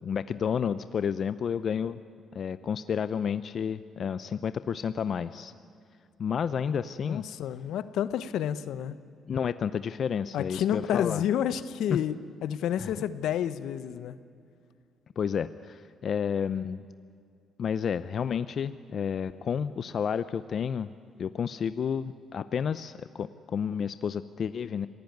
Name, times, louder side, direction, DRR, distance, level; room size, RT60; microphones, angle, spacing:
voice 1, 0.0-2.0 2.3-5.5 6.2-7.2 9.3-11.2 11.9-12.0 12.8-12.9 15.2-16.9 17.6-20.9 21.2-24.9, left 7 dB, 55° left, 13 dB, 0.6 m, -31 dB
voice 2, 7.0-9.0 10.3-12.2 12.4-14.2, left 10 dB, 80° left, 14 dB, 0.9 m, -29 dB
26.5 x 17.5 x 9.5 m, 2.3 s
cardioid pair, 90°, 0 cm